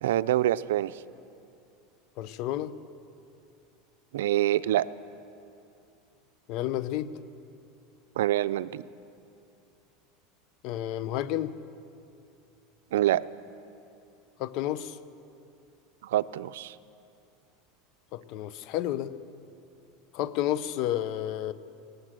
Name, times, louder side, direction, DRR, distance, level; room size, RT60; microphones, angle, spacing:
voice 1, 0.0-1.0 4.1-4.9 8.2-8.8 12.9-13.2 16.0-16.8, right 13 dB, 90° right, 15 dB, 0.5 m, -26 dB
voice 2, 2.2-2.7 6.5-7.1 10.6-11.5 14.4-15.0 18.1-19.1 20.1-21.5, left 12 dB, 55° left, 15 dB, 0.8 m, -31 dB
19.5 x 18.0 x 7.6 m, 2.6 s
supercardioid pair, 130°, 0 cm